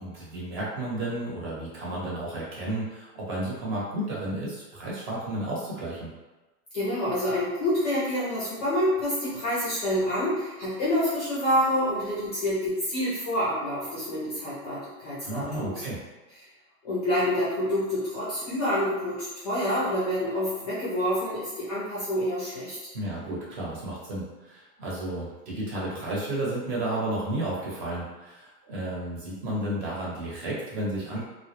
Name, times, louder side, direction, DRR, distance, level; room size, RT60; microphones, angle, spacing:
voice 1, 0.0-6.1 15.2-16.0 22.9-31.2, right 1 dB, 40° right, -5 dB, 0.9 m, -32 dB
voice 2, 6.7-15.8 16.8-22.8, equal, 30° left, -8 dB, 0.4 m, -27 dB
2.1 x 2.1 x 2.9 m, 1.2 s
hypercardioid pair, 145°, 47 cm